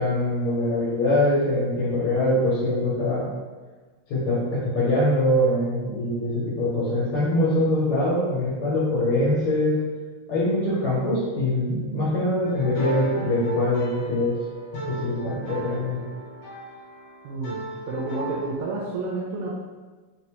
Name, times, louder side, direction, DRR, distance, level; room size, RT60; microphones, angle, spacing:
voice 1, 0.0-3.3 4.1-9.8 10.3-14.3 14.9-16.0, left 1 dB, 85° left, -8 dB, 1.8 m, -23 dB
sound 1, 12.4-18.5, right 2 dB, 55° left, 1.8 m, -36 dB
voice 2, 17.2-19.5, right 3 dB, 90° right, -4 dB, 1.5 m, -30 dB
4.0 x 2.1 x 2.8 m, 1.3 s
omnidirectional pair, 2.3 m